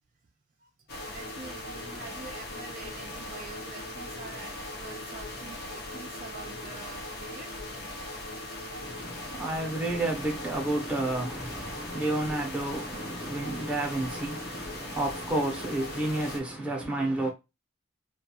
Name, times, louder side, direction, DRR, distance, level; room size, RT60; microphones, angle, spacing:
sound 1, 0.9-16.4, left 1 dB, 50° left, 0.6 m, -39 dB
voice 1, 1.0-7.6, right 4 dB, 40° right, 0.4 m, -46 dB
voice 2, 8.8-17.3, right 2 dB, 5° right, 0.6 m, -31 dB
2.3 x 2.3 x 2.7 m
head